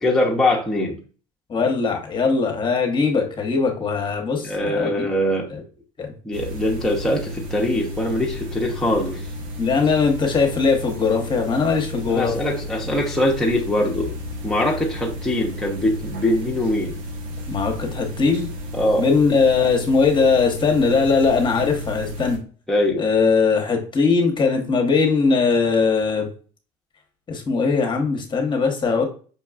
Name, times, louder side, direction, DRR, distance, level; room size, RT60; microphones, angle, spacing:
voice 1, 0.0-1.0 4.4-5.5 6.2-9.2 12.0-14.1 14.4-16.9 18.7-19.1 22.7-23.0, left 1 dB, 5° left, -3 dB, 0.8 m, -22 dB
voice 2, 1.5-5.1 5.5-5.6 6.0-6.1 9.6-12.3 17.5-18.5 19.0-22.4 23.0-26.3 27.3-29.1, left 4 dB, 30° left, 3 dB, 0.9 m, -20 dB
sound 1, 6.3-22.4, left 1 dB, 65° right, 0.9 m, -33 dB
5.4 x 2.3 x 2.3 m, 0.40 s
supercardioid pair, 85°, 16 cm